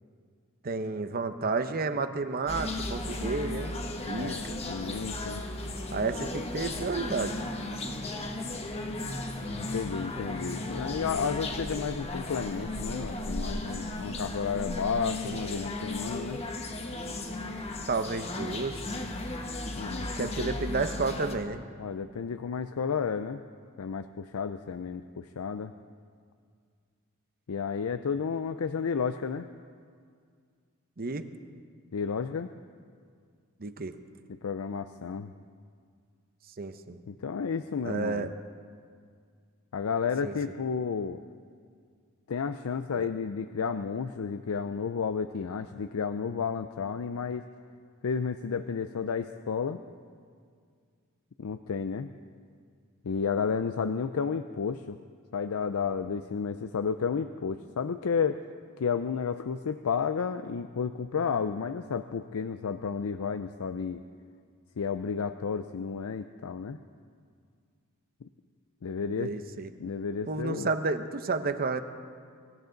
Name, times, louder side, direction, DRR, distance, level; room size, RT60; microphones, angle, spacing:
voice 1, 0.6-3.7 4.1-4.6 5.9-7.4 17.9-18.8 20.2-21.6 31.0-31.3 33.6-34.0 36.6-37.0 37.8-38.3 40.2-40.3 42.9-43.1 69.2-69.7 70.3-71.8, right 3 dB, 45° right, 10 dB, 0.8 m, -31 dB
sound 1, 2.5-21.3, left 2 dB, 30° left, 1.2 m, -35 dB
voice 2, 4.1-5.4 9.5-16.4 19.8-20.5 21.8-23.4 23.8-25.7 27.5-29.5 31.9-32.5 34.3-35.3 37.1-38.3 39.7-41.2 42.3-47.5 48.0-49.8 51.4-52.1 53.0-55.0 55.3-58.4 58.8-64.0 64.8-66.8 68.2-68.3 68.8-69.3 69.8-70.7, left 6 dB, 85° left, 10 dB, 0.5 m, -32 dB
24.0 x 14.5 x 3.9 m, 2.1 s
head